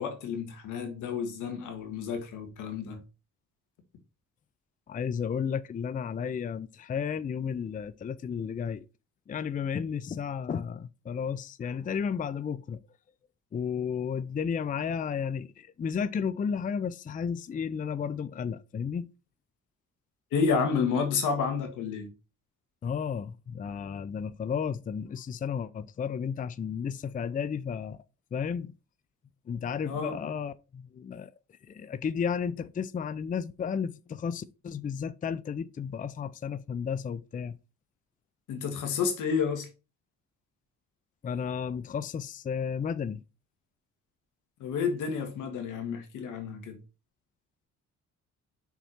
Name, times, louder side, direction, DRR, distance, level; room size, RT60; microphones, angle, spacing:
voice 1, 0.0-3.0 20.3-22.1 29.8-30.3 38.5-39.7 44.6-46.8, left 6 dB, 85° left, 1.6 m, -30 dB
voice 2, 4.9-8.8 9.3-12.8 13.5-19.1 22.8-28.0 28.3-28.7 29.5-31.3 31.7-37.6 41.2-43.2, left 7 dB, 30° left, 0.4 m, -33 dB
5.8 x 4.1 x 4.4 m
cardioid pair, 90°, 30 cm